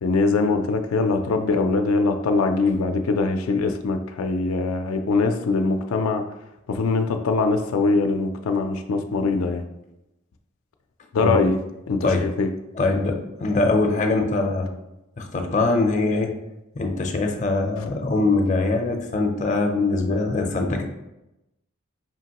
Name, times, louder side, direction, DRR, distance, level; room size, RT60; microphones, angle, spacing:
voice 1, 0.0-6.2 6.7-9.6 11.1-11.6 11.9-12.5, left 3 dB, 85° left, 5 dB, 0.4 m, -22 dB
voice 2, 12.7-14.7 15.2-16.3 16.7-20.8, left 3 dB, 35° left, 3 dB, 0.5 m, -22 dB
5.1 x 2.9 x 2.9 m, 0.91 s
head